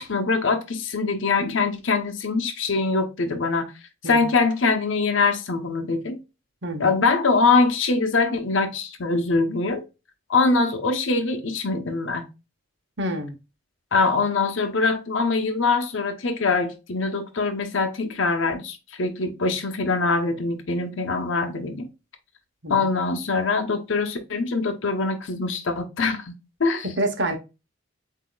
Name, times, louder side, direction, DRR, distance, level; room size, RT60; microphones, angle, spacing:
voice 1, 0.0-3.6 4.1-6.2 6.8-9.8 10.3-12.3 13.9-21.9 22.7-26.3 26.6-26.9, left 4 dB, 70° left, 0.8 m, -23 dB
voice 2, 4.0-4.4 6.6-7.0 13.0-13.4 22.6-22.9 26.8-27.4, right 1 dB, 55° right, 0.9 m, -28 dB
7.8 x 2.7 x 2.2 m
head